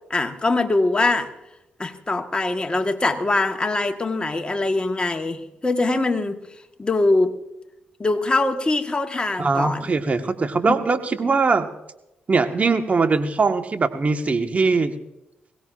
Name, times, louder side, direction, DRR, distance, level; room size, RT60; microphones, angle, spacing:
voice 1, 0.1-1.3 1.8-6.4 6.8-7.3 8.0-9.9 10.7-10.8, left 2 dB, 25° left, 1.4 m, -22 dB
voice 2, 9.4-11.7 12.3-14.9, right 4 dB, 40° right, 1.5 m, -21 dB
21.5 x 17.5 x 2.5 m
hypercardioid pair, 45°, 4 cm